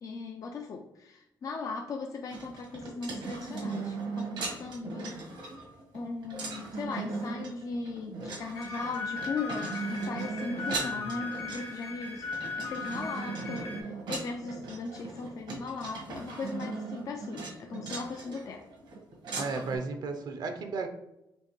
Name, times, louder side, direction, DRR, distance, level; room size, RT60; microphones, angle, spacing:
voice 1, 0.0-5.2 5.9-18.7, left 4 dB, 50° left, 3 dB, 0.4 m, -38 dB
sound 1, 2.3-19.8, right 3 dB, 85° right, 1.3 m, -38 dB
sound 2, 8.5-13.8, left 4 dB, 75° left, 1.1 m, -38 dB
voice 2, 10.8-11.1 19.3-20.9, right 4 dB, 65° right, 5 dB, 0.5 m, -35 dB
4.4 x 2.9 x 3.0 m, 0.90 s
cardioid pair, 120°, 8 cm